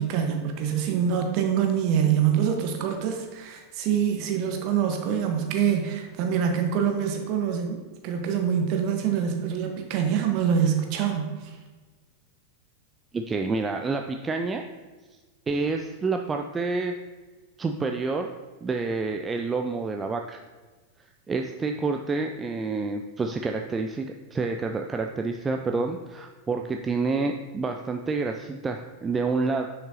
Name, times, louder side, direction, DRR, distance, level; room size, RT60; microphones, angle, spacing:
voice 1, 0.0-11.5, right 8 dB, 40° right, 3 dB, 1.3 m, -25 dB
voice 2, 13.1-14.6 15.5-16.9 17.6-18.3 18.6-20.4 21.3-29.7, right 3 dB, 15° right, 4 dB, 0.4 m, -28 dB
10.0 x 5.7 x 2.9 m, 1.3 s
figure-of-eight pair, 90°, 0 cm